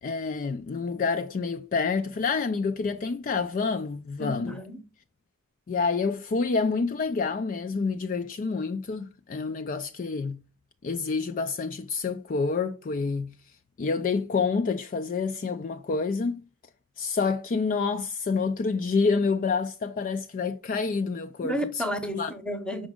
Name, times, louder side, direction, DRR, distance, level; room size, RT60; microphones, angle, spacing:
voice 1, 0.0-4.5 5.7-10.4 10.8-13.3 13.8-16.4 17.0-21.6 22.1-22.3, left 4 dB, 40° left, 0.3 m, -28 dB
voice 2, 4.2-4.8 21.4-22.9, equal, 5° left, 0.8 m, -32 dB
6.0 x 5.0 x 3.6 m
head